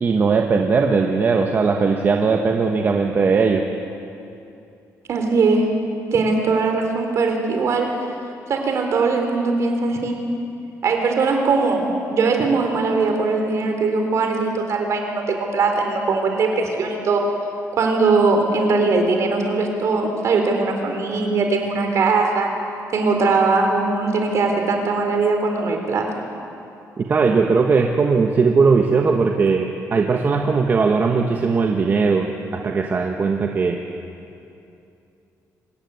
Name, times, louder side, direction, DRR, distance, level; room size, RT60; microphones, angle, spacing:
voice 1, 0.0-3.6 27.0-33.8, right 4 dB, 35° right, 2 dB, 1.3 m, -19 dB
voice 2, 5.1-5.6 6.1-7.9 8.5-10.2 10.8-17.2 17.7-22.5 22.9-26.2, right 3 dB, 55° right, 4 dB, 3.9 m, -20 dB
25.5 x 15.0 x 9.7 m, 2.7 s
cardioid pair, 145°, 6 cm